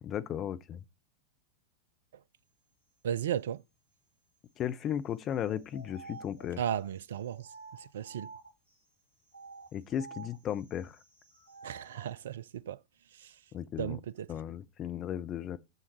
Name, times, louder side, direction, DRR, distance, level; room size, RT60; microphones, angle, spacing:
voice 1, 0.0-0.8 4.6-6.6 9.7-11.0 13.5-14.0 14.3-15.6, left 10 dB, 30° left, 0.5 m, -35 dB
voice 2, 3.0-3.6 6.6-7.5 7.9-8.3 11.6-12.8 13.8-14.3, right 9 dB, 60° right, 0.4 m, -34 dB
sound 1, 5.3-8.7 9.3-12.2, right 4 dB, 80° left, 2.5 m, -51 dB
9.4 x 7.1 x 3.1 m
figure-of-eight pair, 90°, 0 cm